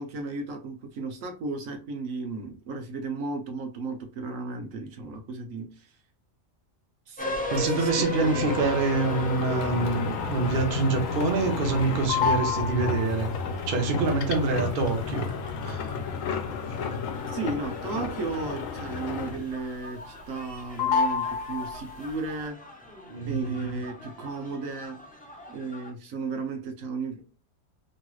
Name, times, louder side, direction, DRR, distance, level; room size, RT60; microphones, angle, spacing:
voice 1, 0.0-5.9 7.1-7.2 7.5-8.5 17.3-22.6 23.3-25.0 25.5-27.2, right 3 dB, 80° right, 1.2 m, -34 dB
sound 1, 7.2-25.9, left 1 dB, 10° left, 0.6 m, -39 dB
voice 2, 7.5-13.3 13.7-15.3 15.6-15.9 23.1-23.8, right 3 dB, 50° right, 0.8 m, -26 dB
sound 2, 8.1-19.6 20.0-20.5 20.8-22.1, left 5 dB, 80° left, 1.0 m, -31 dB
3.1 x 3.0 x 2.3 m
omnidirectional pair, 1.4 m